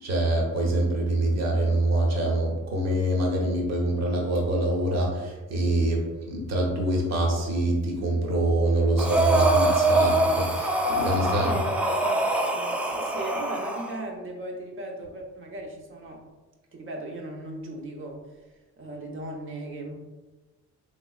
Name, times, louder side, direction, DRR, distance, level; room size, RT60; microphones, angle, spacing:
voice 1, 0.0-11.5, right 1 dB, 60° right, -1 dB, 0.9 m, -25 dB
Breathing, 9.0-13.9, right 2 dB, 5° right, 0.3 m, -24 dB
voice 2, 11.4-16.3 16.7-18.2 18.8-19.9, right 1 dB, 45° right, 1 dB, 0.7 m, -37 dB
3.3 x 3.0 x 2.3 m, 1.2 s
cardioid pair, 90°, 30 cm